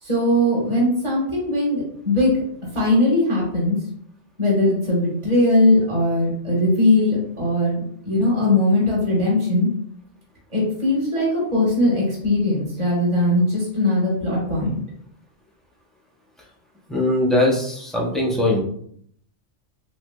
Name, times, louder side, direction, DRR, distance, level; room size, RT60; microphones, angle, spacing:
voice 1, 0.0-2.4 2.7-3.8 4.4-9.7 10.5-14.7, left 1 dB, 25° right, -5 dB, 1.2 m, -20 dB
voice 2, 16.9-18.6, left 1 dB, ahead, -3 dB, 0.4 m, -20 dB
3.3 x 3.3 x 2.2 m, 0.65 s
omnidirectional pair, 1.2 m